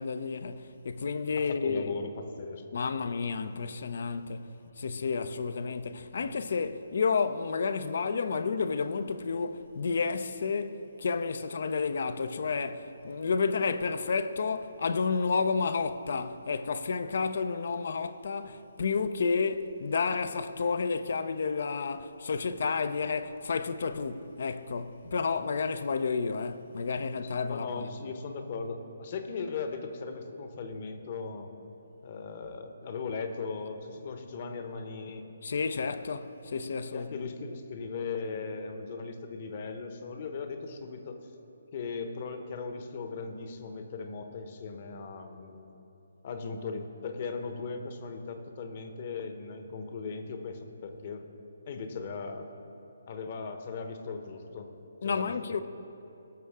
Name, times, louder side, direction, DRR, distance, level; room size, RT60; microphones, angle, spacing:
voice 1, 0.0-2.0 2.7-27.9 35.4-37.3 55.0-55.6, left 5 dB, 60° left, 0.6 m, -31 dB
voice 2, 1.5-2.8 27.5-31.5 32.0-35.3 36.9-41.3 41.7-45.7 46.2-51.3 51.7-52.5 53.1-54.7 55.0-55.3, left 4 dB, 40° left, 1.0 m, -38 dB
18.0 x 6.4 x 3.6 m
figure-of-eight pair, 145°, 0 cm